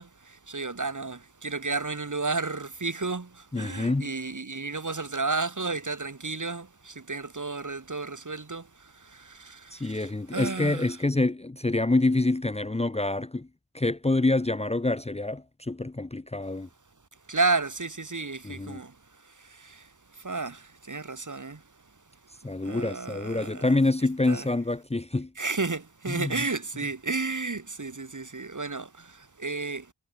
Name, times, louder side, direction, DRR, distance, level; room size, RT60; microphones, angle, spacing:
voice 1, 0.0-11.0 17.3-21.6 22.6-23.7 24.3-24.5 25.4-29.9, right 3 dB, 50° right, 4.8 m, -32 dB
voice 2, 3.5-4.1 9.7-13.5 13.7-16.7 18.4-18.8 22.4-25.3 26.1-26.3, left 2 dB, 15° left, 0.9 m, -26 dB
wide cardioid pair, 60°, 39 cm